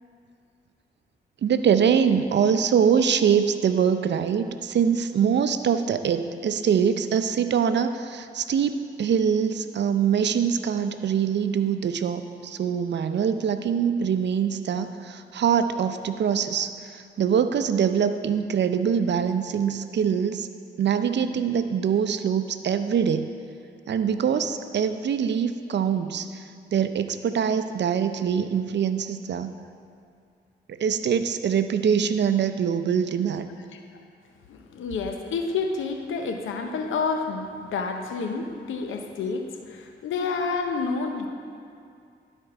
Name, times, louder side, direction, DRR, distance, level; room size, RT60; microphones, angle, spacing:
voice 1, 1.4-16.7 17.2-20.5 20.8-23.3 23.9-26.3 26.7-29.5 30.7-33.5, right 7 dB, 65° right, 10 dB, 0.5 m, -23 dB
voice 2, 34.5-41.3, left 4 dB, 90° left, 5 dB, 0.7 m, -29 dB
12.0 x 4.5 x 4.8 m, 2.4 s
cardioid pair, 55°, 20 cm